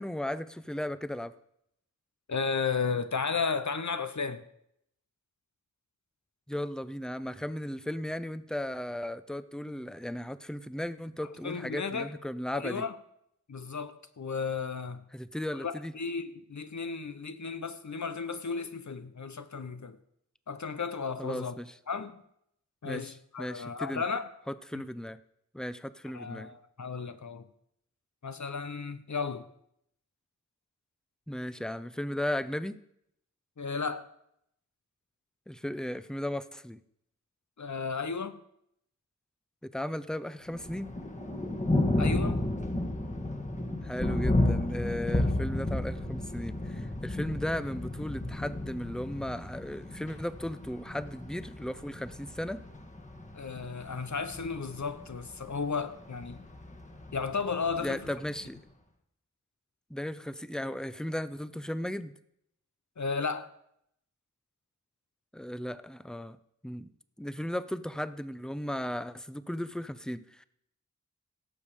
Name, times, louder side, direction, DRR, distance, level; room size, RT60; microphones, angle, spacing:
voice 1, 0.0-1.3 6.5-12.8 15.1-15.9 21.2-21.7 22.8-24.0 24.5-25.2 25.5-26.5 31.3-32.8 35.5-36.8 39.6-40.9 43.8-52.6 57.8-58.6 59.9-62.1 65.3-66.4 66.6-66.9 67.2-70.4, left 1 dB, ahead, 0.6 m, -36 dB
voice 2, 2.3-4.4 11.4-12.1 12.5-13.0 13.5-15.0 15.6-20.0 20.5-21.5 21.9-22.1 22.8-24.3 24.7-24.8 26.1-27.5 28.2-29.5 33.6-34.1 37.6-38.4 42.0-42.5 53.3-56.4 57.1-58.1 63.0-63.5, left 5 dB, 65° left, 0.9 m, -34 dB
Thunder, 40.5-58.4, left 1 dB, 25° left, 1.6 m, -33 dB
17.5 x 7.1 x 5.0 m
wide cardioid pair, 50°, 31 cm